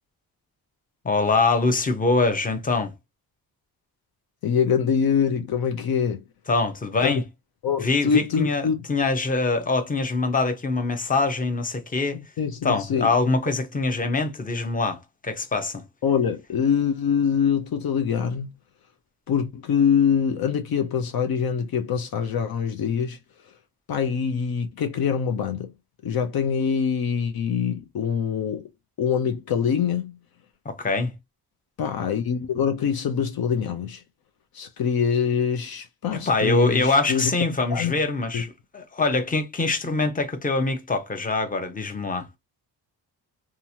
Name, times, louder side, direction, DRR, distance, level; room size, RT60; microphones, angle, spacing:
voice 1, 1.0-2.9 6.5-7.2 7.8-12.2 12.6-15.8 30.6-31.1 36.3-42.3, left 3 dB, 20° left, 0.8 m, -24 dB
voice 2, 4.4-6.2 7.0-7.2 7.6-8.8 12.1-13.1 16.0-18.5 19.3-23.2 23.9-25.7 26.0-28.6 29.0-30.1 31.8-34.0 34.5-37.3 37.7-38.0 38.3-38.4, left 7 dB, 60° left, 0.7 m, -24 dB
2.9 x 2.4 x 2.7 m
cardioid pair, 85°, 40 cm